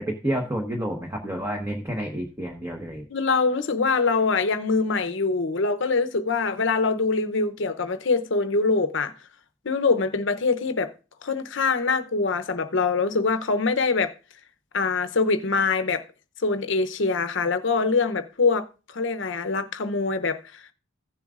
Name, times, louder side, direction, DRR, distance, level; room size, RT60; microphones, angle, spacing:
voice 1, 0.0-3.0, right 1 dB, 15° right, 1.0 m, -29 dB
voice 2, 3.1-9.1 9.6-10.9 11.2-14.1 14.7-16.0 16.4-18.7 18.9-20.6, left 4 dB, 60° left, 0.7 m, -24 dB
15.5 x 7.2 x 2.5 m
head